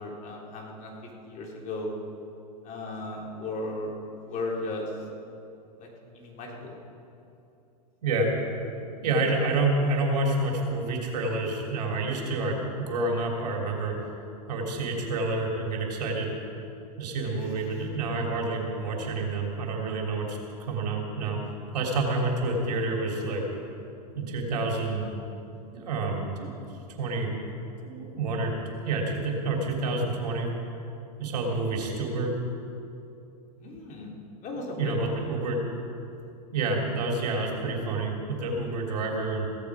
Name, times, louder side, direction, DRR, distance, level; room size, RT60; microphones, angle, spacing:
voice 1, 0.0-2.0 2.6-4.9 5.8-5.9 6.1-6.7 17.5-17.8 33.6-34.1 34.4-35.2, left 2 dB, 40° left, -1 dB, 3.6 m, -36 dB
voice 2, 9.0-13.9 14.5-16.3 17.0-21.4 21.7-23.4 24.1-25.1 25.7-26.5 27.0-27.4 27.8-30.5 31.2-32.4 34.8-35.6 36.5-39.5, right 2 dB, 75° right, 0 dB, 3.4 m, -28 dB
17.0 x 14.5 x 5.0 m, 2.7 s
hypercardioid pair, 110°, 21 cm